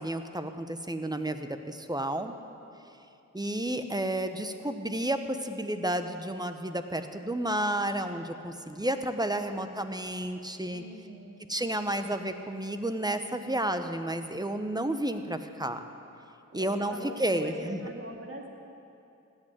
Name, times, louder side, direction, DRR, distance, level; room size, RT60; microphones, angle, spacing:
voice 1, 0.0-2.3 3.3-10.8 11.5-15.8 16.5-16.9 17.2-17.8, right 1 dB, 10° right, 8 dB, 1.0 m, -31 dB
voice 2, 10.7-11.5 16.5-18.5, right 1 dB, 40° right, 0 dB, 2.4 m, -43 dB
15.0 x 6.4 x 9.4 m, 2.7 s
cardioid pair, 45°, 32 cm